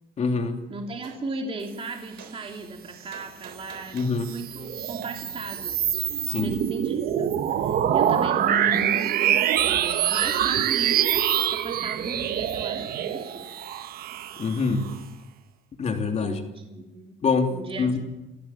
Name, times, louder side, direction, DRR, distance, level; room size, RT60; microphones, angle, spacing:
voice 1, 0.2-0.6 3.9-4.3 6.2-6.5 14.4-14.9 15.8-16.4 17.2-18.0, left 4 dB, 40° left, 4 dB, 3.1 m, -25 dB
voice 2, 0.7-11.2 11.5-13.4 16.2-17.2 17.5-18.0, right 2 dB, 35° right, 2 dB, 3.1 m, -36 dB
Gunshot gunfire, 1.0-1.2 2.2-2.3 3.1-4.2 5.0-5.1, right 8 dB, 85° right, 3.6 m, -45 dB
sound 1, 4.0-14.9, right 10 dB, 60° right, 1.3 m, -25 dB
28.5 x 13.5 x 7.5 m, 1.0 s
cardioid pair, 110°, 17 cm